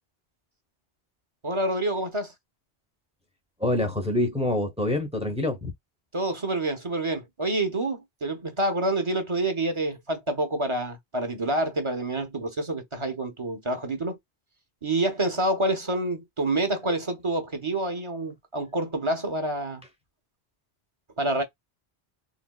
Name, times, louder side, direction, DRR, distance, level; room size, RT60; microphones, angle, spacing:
voice 1, 1.4-2.3 6.1-14.2 14.8-19.8 21.2-21.4, right 1 dB, 30° right, 1.0 m, -27 dB
voice 2, 3.6-5.7, left 1 dB, 5° right, 0.7 m, -26 dB
3.9 x 2.1 x 2.3 m
omnidirectional pair, 1.1 m